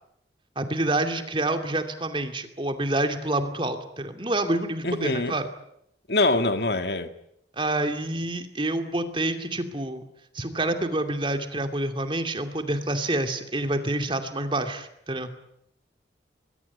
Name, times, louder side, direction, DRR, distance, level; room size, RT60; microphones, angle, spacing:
voice 1, 0.6-5.5 7.5-10.0 10.3-15.3, right 1 dB, 30° right, 7 dB, 2.6 m, -27 dB
voice 2, 4.8-5.4 6.1-7.1, left 2 dB, 65° left, 8 dB, 2.2 m, -24 dB
24.0 x 22.5 x 9.5 m, 0.76 s
head